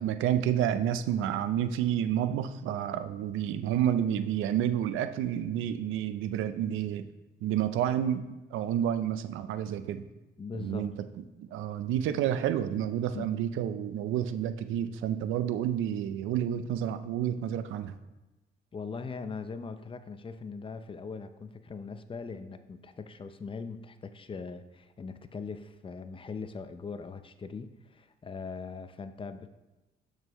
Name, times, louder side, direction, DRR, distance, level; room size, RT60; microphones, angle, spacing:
voice 1, 0.0-7.1 7.4-8.2 8.5-10.0 10.6-11.1 11.4-18.0, right 10 dB, 90° right, 11 dB, 0.5 m, -30 dB
voice 2, 10.4-10.9 13.1-13.2 18.7-29.6, left 5 dB, 25° left, 10 dB, 0.5 m, -40 dB
6.6 x 6.5 x 3.0 m, 1.0 s
cardioid pair, 90°, 20 cm